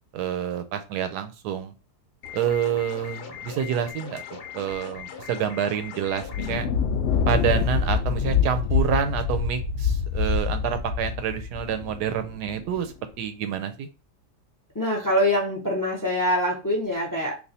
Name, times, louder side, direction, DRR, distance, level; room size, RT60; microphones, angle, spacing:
voice 1, 0.1-1.7 2.3-4.2 4.5-6.7 7.3-13.9, right 8 dB, 85° right, 10 dB, 1.2 m, -28 dB
sound 1, 2.2-6.6, left 7 dB, 80° left, 1.2 m, -40 dB
Thunder, 6.2-12.8, left 6 dB, 60° left, 0.8 m, -25 dB
voice 2, 14.7-17.3, left 1 dB, 20° left, 0 dB, 0.6 m, -24 dB
3.3 x 2.4 x 4.0 m, 0.31 s
omnidirectional pair, 1.7 m